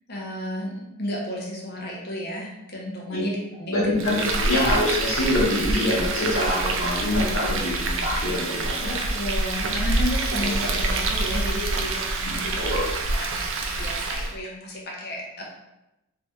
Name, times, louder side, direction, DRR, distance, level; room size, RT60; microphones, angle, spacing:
voice 1, 0.1-4.0 8.8-12.8 13.1-15.4, equal, 50° left, -2 dB, 1.0 m, -33 dB
voice 2, 3.7-9.0 10.4-10.7 12.3-12.9, left 1 dB, 65° left, -5 dB, 1.3 m, -25 dB
Frying (food), 4.0-14.4, right 2 dB, 60° right, 0.4 m, -26 dB
3.3 x 2.8 x 3.6 m, 0.93 s
head